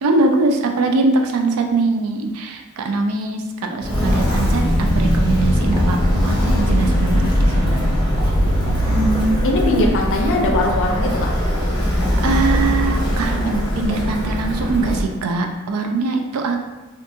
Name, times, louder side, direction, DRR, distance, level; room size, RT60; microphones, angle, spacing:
voice 1, 0.0-7.8 12.2-16.6, right 3 dB, 85° right, 4 dB, 0.4 m, -22 dB
Walk footsteps, 3.8-15.1, equal, 20° left, 0.8 m, -19 dB
voice 2, 8.8-11.3, left 1 dB, 60° left, 1 dB, 0.4 m, -20 dB
2.5 x 2.3 x 2.7 m, 1.1 s
head